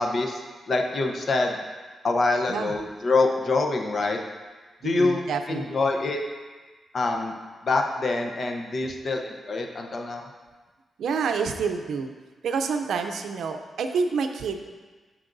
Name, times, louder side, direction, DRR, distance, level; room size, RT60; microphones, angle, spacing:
voice 1, 0.0-1.6 2.0-4.2 4.8-6.2 6.9-7.3 7.6-10.3, left 3 dB, 50° left, 3 dB, 0.8 m, -25 dB
voice 2, 4.8-5.6 11.0-12.1 12.4-14.6, right 5 dB, 85° right, 6 dB, 0.5 m, -28 dB
9.7 x 6.1 x 2.6 m, 1.4 s
cardioid pair, 110°, 0 cm